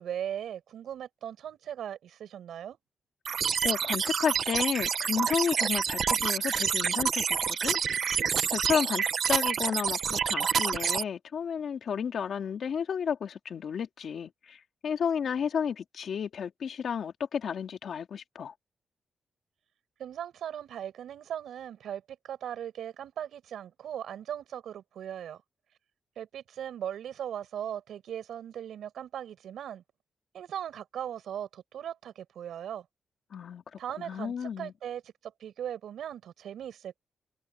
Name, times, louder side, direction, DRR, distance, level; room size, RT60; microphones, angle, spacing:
voice 1, 0.0-2.8 20.0-25.4 26.2-29.8 30.3-32.9 33.8-37.0, right 10 dB, 85° right, 6.4 m, -38 dB
sound 1, 3.2-11.0, right 7 dB, 60° right, 0.8 m, -28 dB
voice 2, 3.6-7.8 8.0-18.5 33.3-34.7, left 7 dB, 65° left, 2.6 m, -32 dB
cardioid pair, 105°, 0 cm